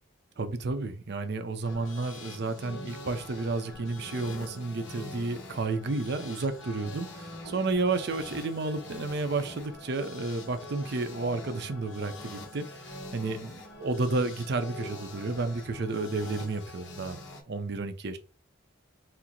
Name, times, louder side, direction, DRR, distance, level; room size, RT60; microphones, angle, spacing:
voice 1, 0.4-13.5 13.8-17.2 17.5-18.2, right 3 dB, 55° right, 0.6 m, -31 dB
sound 1, 1.6-17.4, left 2 dB, 65° left, 1.1 m, -44 dB
4.4 x 2.0 x 3.8 m
head